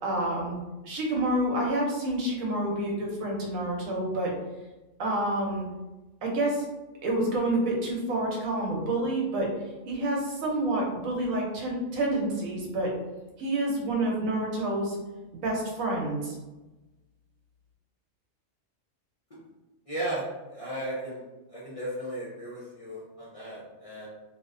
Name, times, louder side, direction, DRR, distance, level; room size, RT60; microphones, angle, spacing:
voice 1, 0.0-0.5 0.8-4.3 5.0-5.7 6.2-6.7 7.0-9.5 9.9-12.9 13.4-15.0 15.4-16.4, right 1 dB, 90° right, -1 dB, 1.1 m, -28 dB
voice 2, 19.9-21.2 21.5-24.1, right 1 dB, 45° left, -9 dB, 0.4 m, -35 dB
2.7 x 2.0 x 2.4 m, 1.1 s
omnidirectional pair, 1.4 m